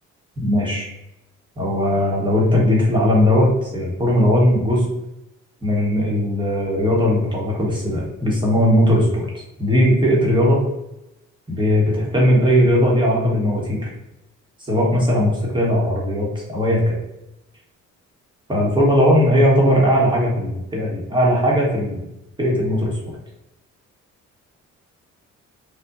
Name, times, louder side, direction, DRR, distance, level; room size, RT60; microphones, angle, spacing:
voice 1, 0.4-0.9 1.6-4.8 5.6-10.6 11.5-13.9 14.6-17.0 18.5-22.0 22.4-23.1, equal, 15° right, -4 dB, 1.3 m, -18 dB
4.3 x 2.4 x 2.6 m, 0.88 s
cardioid pair, 90°, 30 cm